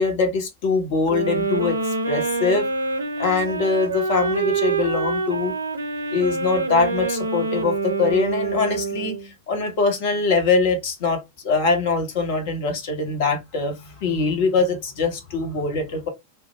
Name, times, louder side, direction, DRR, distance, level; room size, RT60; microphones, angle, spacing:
voice 1, 0.0-2.7 3.2-5.5 6.1-16.1, left 4 dB, 50° left, 0.9 m, -23 dB
sound 1, 1.1-9.3, right 4 dB, 75° right, 0.4 m, -26 dB
2.1 x 2.1 x 3.0 m
figure-of-eight pair, 90°, 0 cm